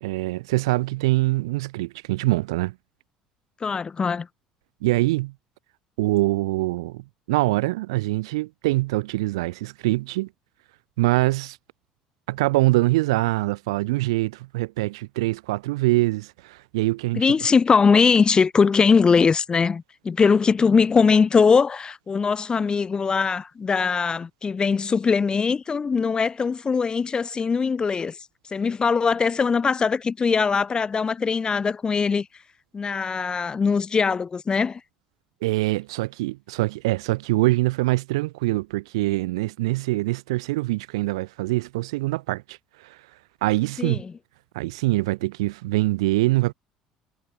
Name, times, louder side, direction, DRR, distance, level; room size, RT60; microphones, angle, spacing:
voice 1, 0.0-2.7 4.8-5.3 6.0-10.3 11.0-11.6 12.3-17.3 35.4-43.0 43.4-44.0 44.5-46.5, right 20 dB, 80° right, 0.7 m, -24 dB
voice 2, 3.6-4.3 17.1-28.2 28.5-32.3 32.7-34.8 43.8-44.1, left 5 dB, 30° left, 0.9 m, -21 dB
hypercardioid pair, 65°, 3 cm